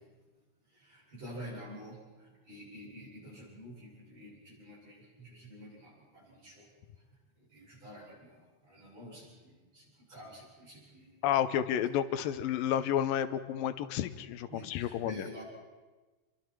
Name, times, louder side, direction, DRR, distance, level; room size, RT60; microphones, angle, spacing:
voice 1, 0.7-6.7 7.5-11.2 14.5-15.4, equal, 45° right, -4 dB, 9.2 m, -49 dB
voice 2, 11.2-15.3, left 10 dB, 90° left, 12 dB, 2.7 m, -31 dB
29.0 x 23.0 x 4.8 m, 1.3 s
omnidirectional pair, 4.0 m